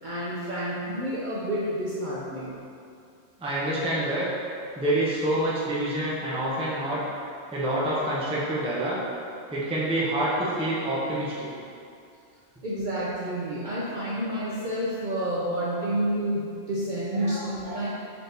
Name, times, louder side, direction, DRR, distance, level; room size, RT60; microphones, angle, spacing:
voice 1, 0.0-2.6 12.6-17.9, right 1 dB, 55° right, -8 dB, 0.5 m, -29 dB
voice 2, 3.4-4.3 4.8-7.0 7.5-9.0 9.5-11.5 17.2-17.8, right 1 dB, 10° right, -7 dB, 0.4 m, -27 dB
4.2 x 3.4 x 2.7 m, 2.4 s
omnidirectional pair, 1.3 m